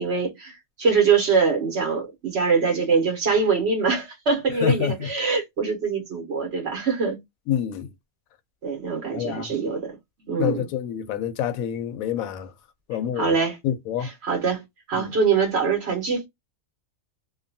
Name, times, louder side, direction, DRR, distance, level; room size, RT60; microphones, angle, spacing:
voice 1, 0.0-7.2 8.6-9.9 10.2-10.6 13.1-13.6 14.0-14.6 14.9-16.2, right 5 dB, 55° right, 1.2 m, -23 dB
voice 2, 4.6-5.1 7.5-7.9 9.1-9.5 10.4-12.5 12.9-13.3 13.6-14.1 15.0-15.1, left 9 dB, 85° left, 1.0 m, -27 dB
2.8 x 2.2 x 2.6 m
omnidirectional pair, 1.4 m